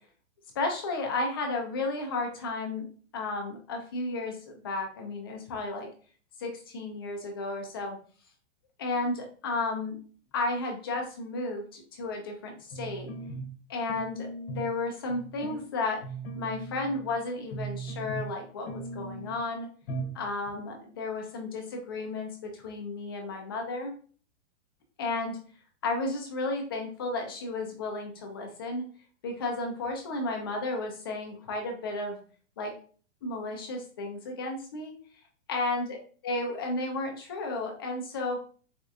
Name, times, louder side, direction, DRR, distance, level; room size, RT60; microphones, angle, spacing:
voice 1, 0.6-2.9 3.1-5.9 6.4-8.0 8.8-10.0 10.3-13.1 13.7-14.3 14.6-16.0 16.4-19.7 20.1-24.0 25.0-25.4 25.8-28.9 29.2-32.2 32.6-32.7 33.2-34.9 35.5-36.0 36.2-38.4, left 2 dB, 20° left, 2 dB, 0.3 m, -33 dB
sound 1, 12.7-13.6 13.9-14.7 15.1-15.6 16.0-17.2 17.5-18.4 18.7-19.4 19.9-20.2 20.5-20.6, right 2 dB, 50° left, 0.9 m, -38 dB
4.2 x 2.5 x 2.3 m, 0.41 s
hypercardioid pair, 160°, 35 cm